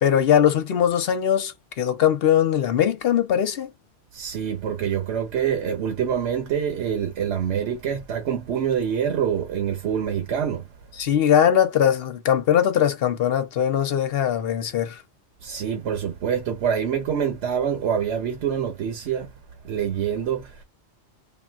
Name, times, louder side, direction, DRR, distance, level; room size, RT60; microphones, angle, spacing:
voice 1, 0.0-3.7 11.0-15.0, left 9 dB, 65° left, 0.9 m, -20 dB
voice 2, 4.1-10.7 15.4-19.3 19.6-20.6, right 8 dB, 80° right, 1.0 m, -26 dB
3.7 x 2.1 x 2.3 m
omnidirectional pair, 1.2 m